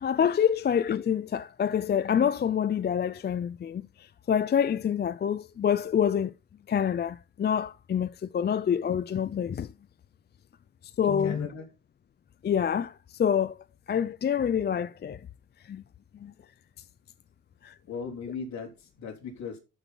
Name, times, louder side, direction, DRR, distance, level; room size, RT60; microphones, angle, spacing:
voice 1, 0.0-6.3 6.7-9.7 11.0-11.5 12.4-13.6 13.9-15.2 15.7-15.8 16.2-16.3 17.6-17.7, left 8 dB, 35° left, 0.5 m, -27 dB
voice 2, 11.0-11.7 17.9-19.6, left 5 dB, 65° left, 3.5 m, -38 dB
12.5 x 6.0 x 3.8 m
cardioid pair, 90°, 30 cm